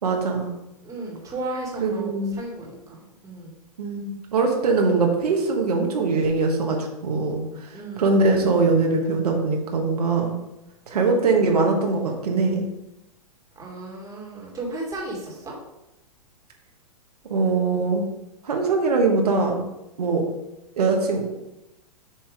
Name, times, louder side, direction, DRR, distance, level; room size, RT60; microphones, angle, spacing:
voice 1, 0.0-0.5 1.8-2.4 3.8-10.3 10.9-12.7 17.3-18.0 18.4-19.6 20.0-20.2 20.8-21.3, right 3 dB, 80° right, 1 dB, 1.3 m, -22 dB
voice 2, 0.8-3.5 7.7-8.1 10.9-11.1 13.5-15.6, right 2 dB, 15° right, -3 dB, 1.7 m, -34 dB
7.1 x 2.9 x 5.0 m, 0.93 s
hypercardioid pair, 130°, 20 cm